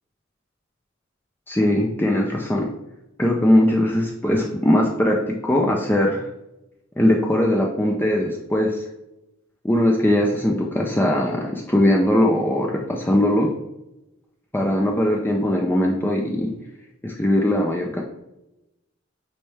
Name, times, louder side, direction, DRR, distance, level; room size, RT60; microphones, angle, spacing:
voice 1, 1.5-2.7 3.2-6.2 7.0-8.8 9.6-13.5 14.5-16.5 17.0-18.0, left 1 dB, 10° left, 0 dB, 0.6 m, -20 dB
8.5 x 3.3 x 3.3 m, 0.93 s
head